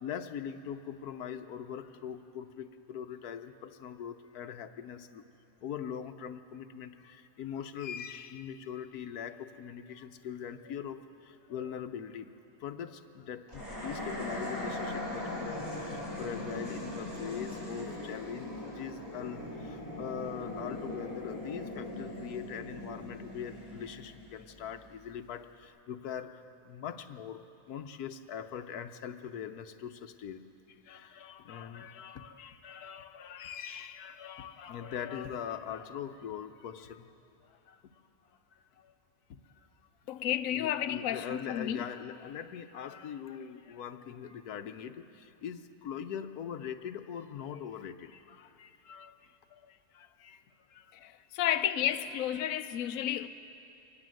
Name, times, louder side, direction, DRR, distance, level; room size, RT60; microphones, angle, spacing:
voice 1, 0.0-5.2 5.6-12.3 12.6-30.4 30.7-37.1 37.4-37.8 38.5-38.9 39.3-39.7 40.5-50.4 50.7-51.1 52.4-52.5 52.8-52.9, left 8 dB, 90° left, 1.4 m, -42 dB
sound 1, 13.5-24.9, left 1 dB, 30° right, 7.0 m, -40 dB
voice 2, 40.1-41.9 51.0-53.3, left 11 dB, 65° left, 1.1 m, -31 dB
24.0 x 19.0 x 7.7 m
omnidirectional pair, 1.6 m